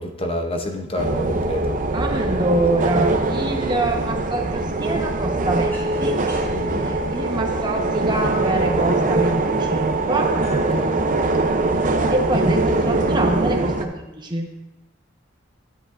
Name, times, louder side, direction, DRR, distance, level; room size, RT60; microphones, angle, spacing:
voice 1, 0.0-1.7 6.5-6.9 10.7-11.1, left 1 dB, 30° left, 4 dB, 0.7 m, -28 dB
sound 1, 1.0-13.9, right 2 dB, 45° right, 0.6 m, -22 dB
voice 2, 1.9-6.2 6.7-10.4 12.1-14.5, right 1 dB, 25° right, 2 dB, 1.0 m, -25 dB
sound 2, 5.7-13.5, equal, 10° left, 3.3 m, -42 dB
10.5 x 10.0 x 2.5 m, 0.98 s
head